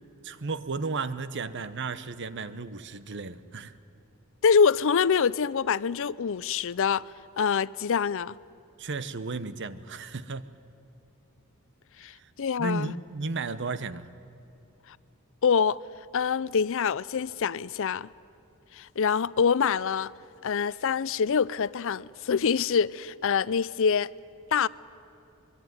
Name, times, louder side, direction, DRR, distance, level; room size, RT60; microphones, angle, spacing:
voice 1, 0.2-3.7 8.8-10.5 12.2-12.3 12.6-14.1, right 3 dB, 55° right, 1.0 m, -34 dB
voice 2, 4.4-7.0 7.4-8.4 12.0-12.9 14.9-15.0 15.4-15.8 16.1-18.1 18.7-20.1 20.4-24.1 24.5-24.7, left 6 dB, 65° left, 0.5 m, -25 dB
24.0 x 22.0 x 9.5 m
head